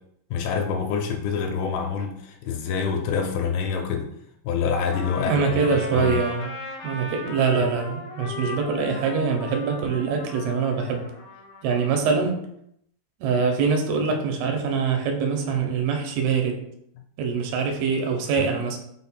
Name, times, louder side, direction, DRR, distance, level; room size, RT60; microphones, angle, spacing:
voice 1, 0.3-4.1 4.4-5.5 5.7-6.2 18.4-18.5, left 6 dB, 80° left, 3 dB, 2.4 m, -26 dB
Trumpet, 4.8-12.0, left 2 dB, 65° left, 1.7 m, -38 dB
voice 2, 5.3-6.5 6.8-11.1 11.6-12.4 13.2-16.7 17.2-18.8, right 5 dB, 90° right, 3 dB, 2.6 m, -24 dB
5.8 x 2.1 x 4.2 m, 0.73 s
omnidirectional pair, 4.4 m